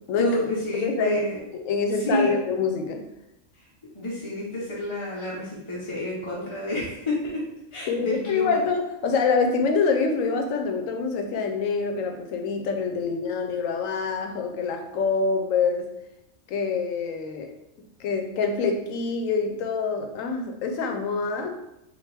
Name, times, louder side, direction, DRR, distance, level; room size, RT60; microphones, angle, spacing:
voice 1, 0.2-1.4 2.1-2.4 3.6-3.7 3.9-7.4 7.7-8.6, left 1 dB, 30° left, -7 dB, 0.7 m, -29 dB
voice 2, 0.8-1.2 1.5-3.0 7.9-15.9 16.5-17.5 18.0-21.6, left 4 dB, 85° left, 4 dB, 1.0 m, -25 dB
4.4 x 2.6 x 3.3 m, 0.87 s
omnidirectional pair, 1.3 m